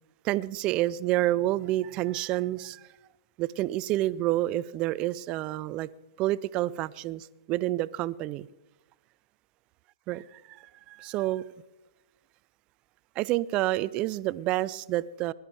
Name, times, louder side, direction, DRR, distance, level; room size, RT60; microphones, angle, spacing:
voice 1, 0.2-2.8 3.4-5.9 6.2-8.5 10.1-11.4 13.2-15.3, right 15 dB, 30° right, 0.4 m, -29 dB
21.0 x 11.5 x 3.4 m
hypercardioid pair, 125°, 3 cm